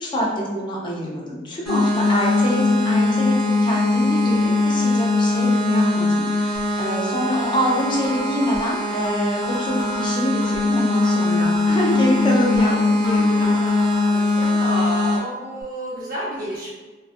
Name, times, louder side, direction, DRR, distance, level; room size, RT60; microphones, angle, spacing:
voice 1, 0.0-13.6, equal, 25° left, -3 dB, 0.3 m, -25 dB
sound 1, 1.7-15.2, left 2 dB, ahead, 0.9 m, -21 dB
voice 2, 3.4-3.8 4.2-4.4 12.6-16.7, left 1 dB, 50° right, -6 dB, 0.8 m, -32 dB
sound 2, 6.5-6.6 7.0-7.1 7.4-8.6 9.0-9.2 9.4-10.6 11.0-11.1 11.4-12.6 13.0-13.2 13.4-14.5, left 1 dB, 60° left, 0.6 m, -36 dB
2.6 x 2.1 x 2.4 m, 1.3 s
head